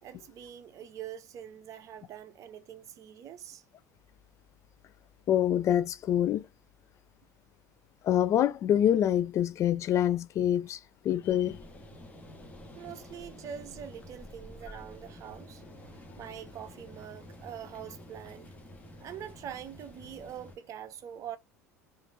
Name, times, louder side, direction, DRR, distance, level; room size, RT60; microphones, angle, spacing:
voice 1, 0.0-3.6 12.8-15.6 16.2-18.5 19.0-21.4, right 9 dB, 40° right, 0.7 m, -44 dB
voice 2, 5.3-6.5 8.0-10.8 11.0-11.6, left 10 dB, 35° left, 0.4 m, -26 dB
sound 1, 11.2-20.6, equal, 15° left, 1.3 m, -49 dB
5.1 x 2.6 x 2.6 m
figure-of-eight pair, 70°, 9 cm